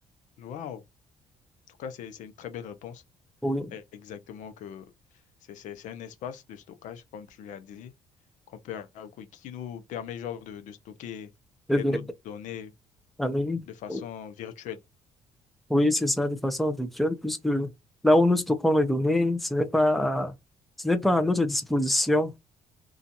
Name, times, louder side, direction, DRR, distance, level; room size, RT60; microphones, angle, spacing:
voice 1, 0.4-0.8 1.7-3.0 3.7-4.9 5.5-7.9 8.5-11.3 11.8-12.7 13.6-14.8, left 9 dB, 70° left, 0.6 m, -40 dB
voice 2, 13.2-13.6 13.9-14.0 15.7-17.7 18.0-20.3 20.8-22.3, left 1 dB, ahead, 0.5 m, -24 dB
2.5 x 2.3 x 2.7 m
supercardioid pair, 80°, 13 cm